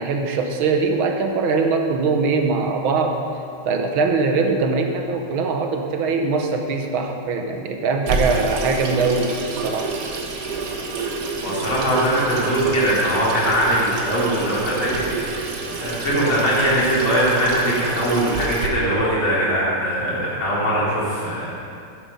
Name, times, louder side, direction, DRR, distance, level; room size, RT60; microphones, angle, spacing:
voice 1, 0.0-3.2 3.7-9.9, right 4 dB, 85° right, 4 dB, 1.8 m, -22 dB
Water tap faucet / Sink (filling or washing), 8.1-18.7, right 3 dB, 50° right, 1.3 m, -28 dB
voice 2, 11.4-15.4 15.7-21.5, equal, 75° left, -7 dB, 4.2 m, -21 dB
10.5 x 10.5 x 5.4 m, 2.4 s
omnidirectional pair, 2.2 m